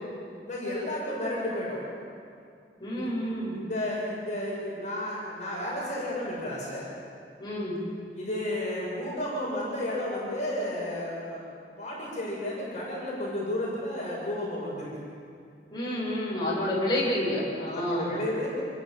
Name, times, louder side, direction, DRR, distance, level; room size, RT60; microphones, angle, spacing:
voice 1, 0.5-1.8 2.9-3.1 3.7-6.9 8.1-11.4 11.8-14.9 17.7-18.5, left 1 dB, 45° left, -5 dB, 7.2 m, -32 dB
voice 2, 2.8-3.6 7.4-7.8 15.7-18.2, left 1 dB, 25° left, -5 dB, 7.9 m, -29 dB
28.0 x 22.0 x 7.5 m, 2.3 s
head